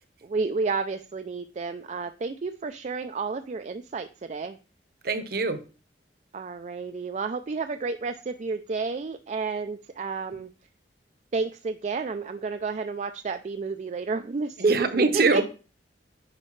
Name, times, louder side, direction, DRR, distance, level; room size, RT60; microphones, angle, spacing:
voice 1, 0.2-4.6 6.3-10.5 11.3-15.4, right 4 dB, 40° right, 9 dB, 0.4 m, -30 dB
voice 2, 5.0-5.6 14.6-15.4, right 3 dB, 55° right, 9 dB, 0.9 m, -23 dB
9.8 x 5.3 x 3.2 m, 0.35 s
head